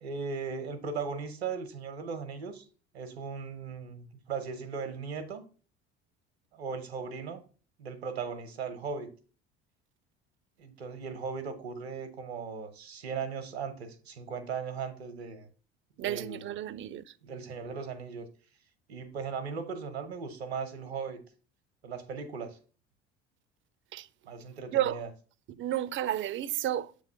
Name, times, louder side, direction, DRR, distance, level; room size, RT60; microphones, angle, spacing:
voice 1, 0.0-2.6 2.9-5.4 6.5-7.4 7.8-9.1 10.6-15.5 16.0-16.5 17.2-18.3 18.9-21.2 21.8-22.6 24.3-25.1, right 5 dB, 85° right, 0.8 m, -38 dB
voice 2, 16.0-17.1 23.9-24.1 24.7-25.0 25.5-27.0, right 12 dB, 40° right, 0.5 m, -32 dB
7.4 x 3.1 x 5.5 m
hypercardioid pair, 60°, 31 cm